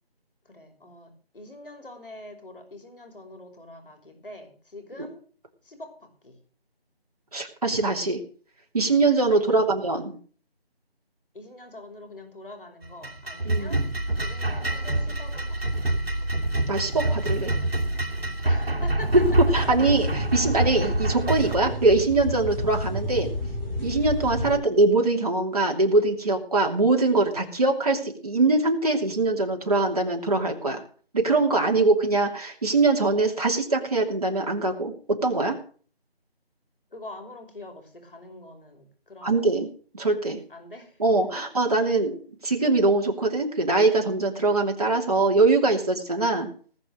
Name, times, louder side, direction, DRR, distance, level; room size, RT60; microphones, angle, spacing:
voice 1, 0.5-5.2 5.6-6.4 9.3-9.8 11.3-13.8 14.2-15.9 18.4-19.2 24.5-24.7 36.9-39.6 40.5-41.0 41.4-41.5, left 2 dB, 60° left, 5 dB, 5.8 m, -44 dB
voice 2, 7.3-8.2 8.7-10.1 13.4-13.8 16.7-17.5 19.5-23.3 23.8-30.8 31.1-35.6 39.2-39.7 39.9-40.4 41.0-42.2 42.4-46.5, right 3 dB, 40° right, 1 dB, 2.9 m, -22 dB
sound 1, 12.8-21.6, right 1 dB, 70° right, 2.4 m, -26 dB
sound 2, 19.1-24.5, left 1 dB, 5° left, 3.2 m, -31 dB
19.0 x 7.1 x 7.8 m, 0.44 s
figure-of-eight pair, 170°, 31 cm